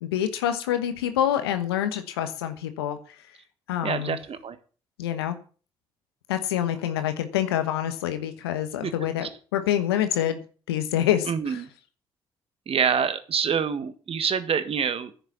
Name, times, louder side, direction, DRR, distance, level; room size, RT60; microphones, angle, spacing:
voice 1, 0.0-3.2 3.7-4.2 5.0-5.4 6.3-10.4 10.7-11.6, left 11 dB, 85° left, 9 dB, 1.3 m, -26 dB
voice 2, 3.8-4.6 8.8-8.9 9.2-9.3 11.3-11.7 12.7-15.1, right 7 dB, 50° right, 11 dB, 1.6 m, -26 dB
10.5 x 6.8 x 8.2 m, 0.39 s
hypercardioid pair, 45°, 13 cm